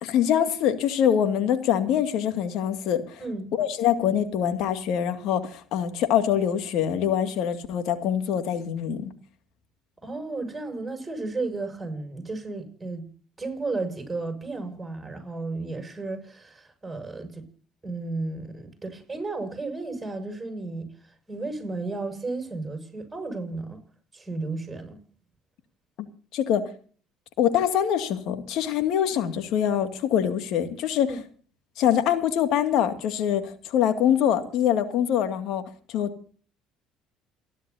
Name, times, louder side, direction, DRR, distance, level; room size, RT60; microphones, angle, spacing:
voice 1, 0.0-3.2 3.6-9.1 26.3-26.6 27.4-31.1 31.8-35.6 35.9-36.1, left 9 dB, 65° left, 2.2 m, -24 dB
voice 2, 3.2-3.5 10.0-13.1 13.4-17.5 17.8-23.8 24.1-25.0 31.1-31.2, right 3 dB, 15° right, 6.8 m, -33 dB
28.5 x 11.0 x 2.8 m
hypercardioid pair, 70°, 0 cm